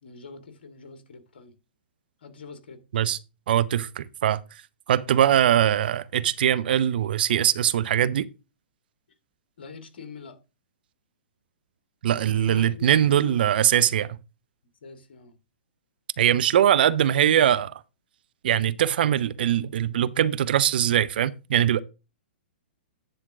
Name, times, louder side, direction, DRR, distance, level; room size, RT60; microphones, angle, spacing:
voice 1, 0.0-1.5 2.2-2.8 9.6-10.4 12.2-13.4 14.8-15.3, left 5 dB, 65° left, 1.8 m, -44 dB
voice 2, 3.5-4.4 4.9-8.3 12.0-14.2 16.2-17.7 18.4-21.8, right 10 dB, 60° right, 0.5 m, -22 dB
10.0 x 3.7 x 5.9 m
hypercardioid pair, 120°, 6 cm